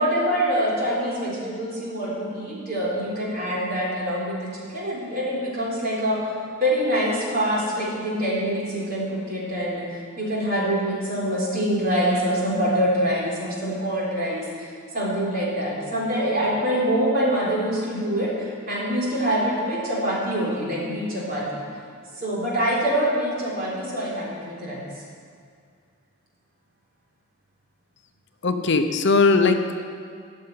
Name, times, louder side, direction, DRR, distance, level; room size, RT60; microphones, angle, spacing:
voice 1, 0.0-6.3 6.6-21.6 22.2-24.9, equal, 45° right, -5 dB, 3.9 m, -25 dB
voice 2, 28.4-29.8, left 3 dB, 55° left, 7 dB, 0.7 m, -19 dB
14.0 x 6.8 x 9.5 m, 2.2 s
head